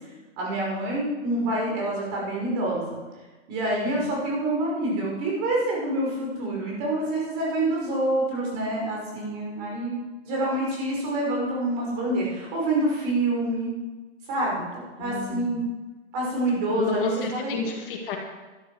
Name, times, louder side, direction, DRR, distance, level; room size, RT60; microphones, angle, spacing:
voice 1, 0.4-3.0 3.5-13.7 14.3-14.7 15.0-15.6 16.1-17.5, right 1 dB, 35° right, -2 dB, 5.6 m, -27 dB
voice 2, 15.0-15.6 16.8-18.2, left 4 dB, 45° left, 1 dB, 2.4 m, -31 dB
12.5 x 11.0 x 6.4 m, 1.2 s
hypercardioid pair, 165°, 36 cm